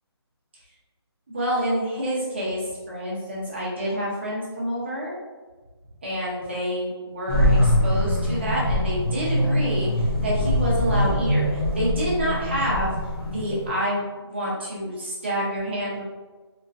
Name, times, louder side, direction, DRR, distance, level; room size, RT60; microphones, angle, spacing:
voice 1, 1.3-5.2 6.0-12.9 13.2-16.0, equal, 25° right, -6 dB, 0.7 m, -28 dB
sound 1, 7.3-13.7, equal, 55° left, 1.1 m, -23 dB
3.0 x 2.8 x 2.4 m, 1.3 s
hypercardioid pair, 175°, 14 cm